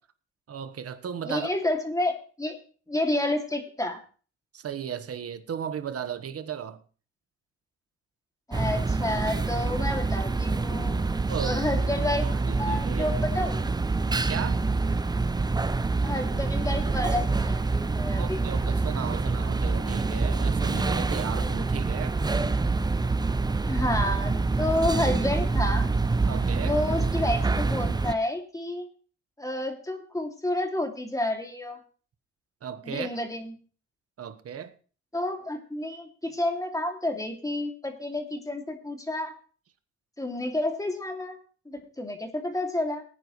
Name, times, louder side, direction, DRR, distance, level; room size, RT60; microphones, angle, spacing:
voice 1, 0.5-1.5 4.5-6.8 11.3-11.6 12.2-13.2 14.3-14.6 18.1-22.2 26.3-26.8 32.6-33.2 34.2-34.7, right 8 dB, 50° right, 1.2 m, -35 dB
voice 2, 1.3-2.6 2.9-4.0 8.5-11.1 11.4-12.3 12.6-13.7 16.0-18.4 23.7-25.9 26.5-28.9 29.4-31.8 32.8-33.5 35.1-39.4 40.2-41.4 41.7-43.0, left 1 dB, 10° left, 2.5 m, -30 dB
sound 1, 8.5-28.1, right 3 dB, 15° right, 0.6 m, -26 dB
19.0 x 9.8 x 3.2 m
cardioid pair, 90°, 30 cm